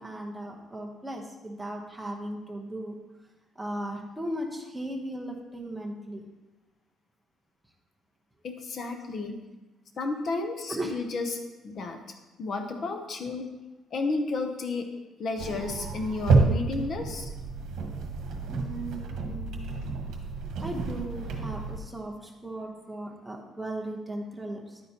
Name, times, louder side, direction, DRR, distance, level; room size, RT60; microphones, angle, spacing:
voice 1, 0.0-3.0 3.6-6.2 10.7-10.9 18.5-19.8 20.6-24.8, right 1 dB, 5° right, 0 dB, 0.9 m, -37 dB
voice 2, 8.4-9.4 10.0-12.0 12.4-13.5 13.9-14.9 15.2-17.3, left 3 dB, 40° left, 5 dB, 0.7 m, -32 dB
sound 1, 15.4-21.8, right 3 dB, 65° right, 1.3 m, -29 dB
10.5 x 9.2 x 2.9 m, 1.1 s
cardioid pair, 175°, 0 cm